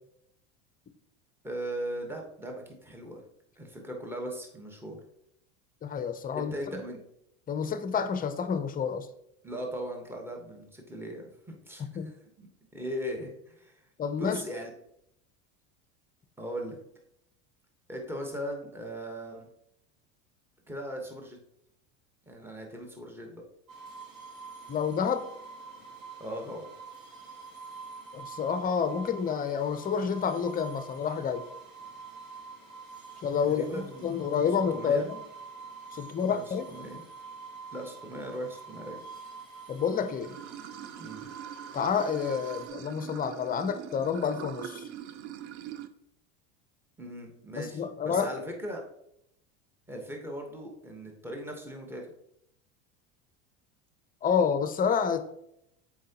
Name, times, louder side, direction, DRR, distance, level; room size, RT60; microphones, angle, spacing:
voice 1, 1.4-3.2 3.6-5.0 6.3-7.0 9.4-11.9 12.4-12.5 12.7-13.8 14.2-14.7 16.4-16.8 17.9-19.5 20.7-21.4 22.3-23.4 26.2-26.7 33.4-34.2 34.7-35.1 35.9-36.4 36.7-37.0 37.7-39.0 41.0-41.3 47.0-48.8 49.9-52.0, equal, 5° right, 1 dB, 1.1 m, -38 dB
voice 2, 5.8-6.8 7.5-9.1 11.9-12.1 14.0-14.4 24.7-25.3 28.1-31.5 33.2-35.2 35.9-36.7 39.7-40.4 41.7-44.9 47.6-48.3 54.2-55.2, left 6 dB, 25° left, 10 dB, 0.6 m, -29 dB
sound 1, 23.7-42.7, right 4 dB, 55° right, 1.9 m, -46 dB
Water / Sink (filling or washing), 40.2-45.9, right 10 dB, 70° right, 0.6 m, -43 dB
7.4 x 4.6 x 2.9 m, 0.74 s
supercardioid pair, 105°, 36 cm